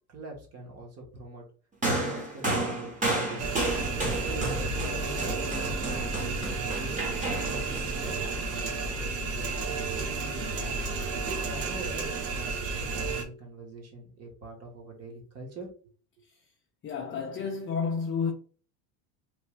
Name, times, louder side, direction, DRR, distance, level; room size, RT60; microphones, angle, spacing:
voice 1, 0.1-1.5 1.8-3.4 4.1-7.0 7.5-10.9 11.4-15.7, right 2 dB, 30° right, 1.5 m, -43 dB
sound 1, 1.8-9.3 10.3-10.5, right 2 dB, 15° right, 1.2 m, -32 dB
sound 2, 3.4-13.2, right 3 dB, 55° right, 1.0 m, -32 dB
voice 2, 16.8-18.3, left 5 dB, 25° left, 0.6 m, -31 dB
3.4 x 2.6 x 3.2 m
supercardioid pair, 120°, 48 cm